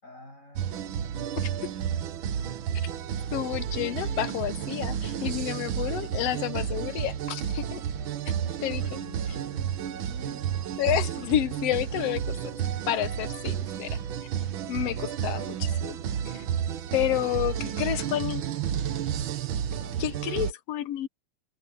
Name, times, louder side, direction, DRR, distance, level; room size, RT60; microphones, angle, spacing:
voice 1, 0.0-1.7 3.8-4.3 5.8-6.2 8.0-10.5 19.6-20.4, left 1 dB, 20° left, 6.7 m, -47 dB
sound 1, 0.6-20.5, right 9 dB, 70° right, 1.2 m, -31 dB
voice 2, 3.3-7.8 8.6-8.8 10.8-12.5 12.9-14.0 14.7-16.0 16.2-16.4 16.9-18.4 20.0-21.1, left 12 dB, 75° left, 1.5 m, -30 dB
omnidirectional pair, 3.7 m